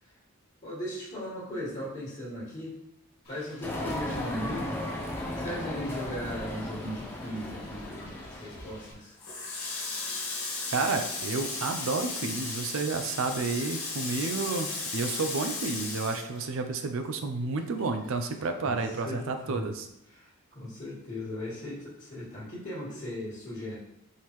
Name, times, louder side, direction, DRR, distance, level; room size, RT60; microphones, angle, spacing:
voice 1, 0.6-2.8 3.3-4.9 5.3-9.2 18.6-18.7 19.0-19.7 20.1-20.3 20.5-23.8, left 1 dB, 35° left, -15 dB, 1.7 m, -37 dB
sound 1, 3.2-8.9, left 1 dB, 85° left, 1.3 m, -52 dB
sound 2, 3.6-8.8, left 1 dB, 10° left, 0.6 m, -36 dB
Water tap faucet, 9.2-17.0 17.4-18.7, left 3 dB, 70° left, 1.4 m, -35 dB
voice 2, 10.7-19.9, right 3 dB, 60° right, 6 dB, 0.4 m, -31 dB
4.5 x 3.5 x 3.1 m, 0.81 s
head